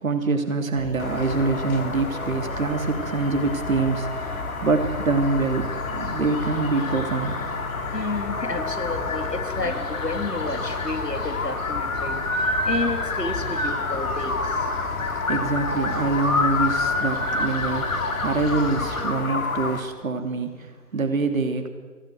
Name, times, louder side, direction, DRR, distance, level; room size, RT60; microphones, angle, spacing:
voice 1, 0.0-7.4 15.3-21.7, right 3 dB, 55° right, 6 dB, 3.0 m, -25 dB
sound 1, 0.7-19.0, left 2 dB, 40° left, 5.6 m, -37 dB
sound 2, 1.0-19.8, left 3 dB, 60° left, 3.0 m, -28 dB
voice 2, 7.9-14.7, left 2 dB, 85° left, 6 dB, 3.5 m, -31 dB
25.0 x 17.0 x 8.2 m, 1.5 s
figure-of-eight pair, 150°, 48 cm